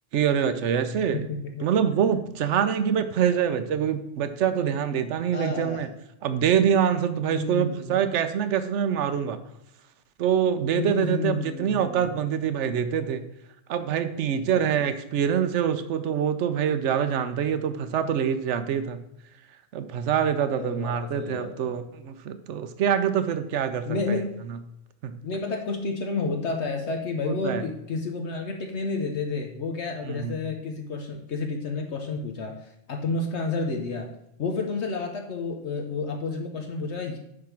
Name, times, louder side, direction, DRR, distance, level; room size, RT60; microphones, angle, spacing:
voice 1, 0.1-1.2 1.6-5.9 6.2-9.4 10.2-13.2 13.7-19.0 19.7-24.2 25.0-25.1 27.2-27.6 30.0-30.4, right 8 dB, 70° right, 10 dB, 1.0 m, -25 dB
voice 2, 1.3-1.7 5.3-5.9 7.3-8.2 10.7-12.1 14.6-14.9 20.6-21.8 23.8-24.2 25.2-34.1 34.4-37.2, left 3 dB, 65° left, 2 dB, 1.1 m, -30 dB
9.8 x 3.5 x 5.9 m, 0.81 s
omnidirectional pair, 1.3 m